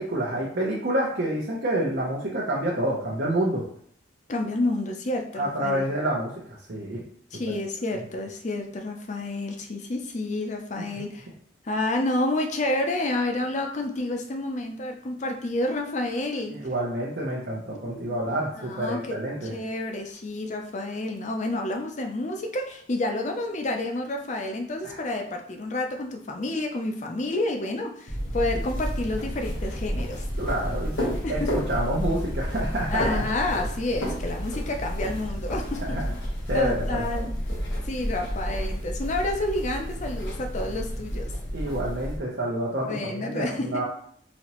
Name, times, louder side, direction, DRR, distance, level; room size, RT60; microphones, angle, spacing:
voice 1, 0.0-3.6 5.3-6.3 6.7-7.0 16.5-19.5 24.8-25.0 30.4-33.0 35.9-36.0 36.5-37.0 41.5-43.9, right 1 dB, 55° right, -4 dB, 0.7 m, -28 dB
voice 2, 4.3-5.9 7.3-11.3 11.6-16.6 17.9-18.2 18.6-19.2 19.5-30.2 31.2-31.7 32.9-36.0 36.5-37.3 37.8-41.3 42.9-43.9, left 2 dB, 40° left, 4 dB, 0.5 m, -29 dB
sound 1, 28.1-42.2, equal, 90° left, 1.2 m, -31 dB
4.1 x 2.9 x 3.0 m, 0.62 s
head